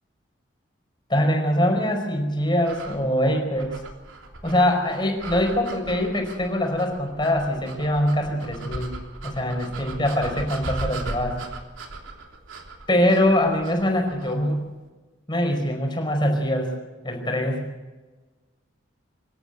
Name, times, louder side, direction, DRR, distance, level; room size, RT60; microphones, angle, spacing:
voice 1, 1.1-3.8 4.4-8.9 9.2-11.4 12.9-14.6 15.3-16.7 17.0-17.6, left 1 dB, 25° left, 3 dB, 4.9 m, -23 dB
sound 1, 2.6-14.5, right 2 dB, 85° right, 3.3 m, -38 dB
26.5 x 13.0 x 8.1 m, 1.2 s
head